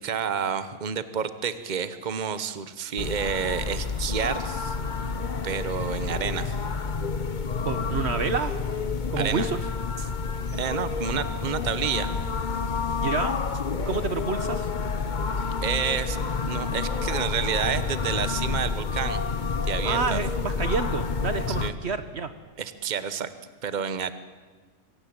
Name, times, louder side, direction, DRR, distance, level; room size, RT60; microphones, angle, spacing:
voice 1, 0.0-4.8 5.4-6.6 9.2-9.5 10.5-12.1 15.6-19.2 19.7-20.2 21.5-21.7 22.6-23.3 23.6-24.1, right 7 dB, 35° right, 13 dB, 1.1 m, -29 dB
sound 1, 3.0-21.7, left 4 dB, 40° left, 1.1 m, -29 dB
voice 2, 7.6-8.5 9.1-9.6 13.0-13.3 13.8-14.7 19.8-22.3, right 5 dB, 55° right, 11 dB, 1.2 m, -29 dB
24.5 x 17.0 x 8.8 m, 1.4 s
omnidirectional pair, 1.4 m